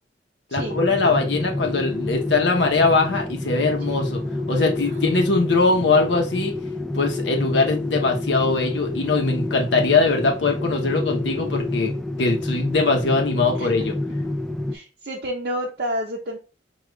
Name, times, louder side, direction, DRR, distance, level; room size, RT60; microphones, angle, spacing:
voice 1, 0.5-4.2 4.5-6.5 6.9-13.9, left 3 dB, 70° left, 2 dB, 0.8 m, -21 dB
sound 1, 0.6-14.8, left 2 dB, ahead, 0.4 m, -28 dB
voice 2, 13.5-13.9 14.7-16.4, equal, 55° right, -1 dB, 0.6 m, -30 dB
4.9 x 2.3 x 3.1 m, 0.33 s
head